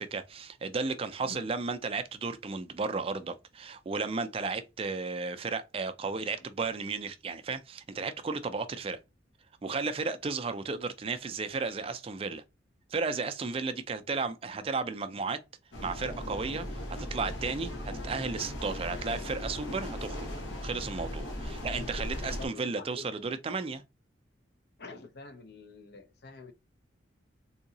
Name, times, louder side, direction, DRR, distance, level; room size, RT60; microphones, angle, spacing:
voice 1, 0.0-9.0 9.6-12.4 12.9-15.4 15.8-20.3 20.6-23.8, right 4 dB, 30° right, 0.3 m, -34 dB
voice 2, 14.2-14.7 21.5-21.9 22.3-23.4 24.8-26.5, left 3 dB, 55° left, 0.5 m, -48 dB
sound 1, 15.7-22.5, left 1 dB, 75° left, 1.1 m, -38 dB
3.7 x 2.8 x 2.7 m
head